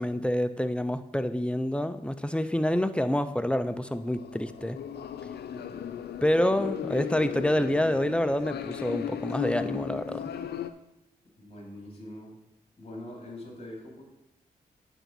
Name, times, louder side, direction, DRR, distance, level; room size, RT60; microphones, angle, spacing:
voice 1, 0.0-4.8 6.2-10.3, left 1 dB, 5° left, 11 dB, 0.6 m, -27 dB
sound 1, 3.9-10.7, left 9 dB, 70° left, 0.5 m, -36 dB
voice 2, 5.5-5.9 11.4-12.4 12.8-14.0, left 1 dB, 35° left, -1 dB, 2.8 m, -43 dB
8.9 x 3.9 x 6.1 m, 0.94 s
supercardioid pair, 40°, 17 cm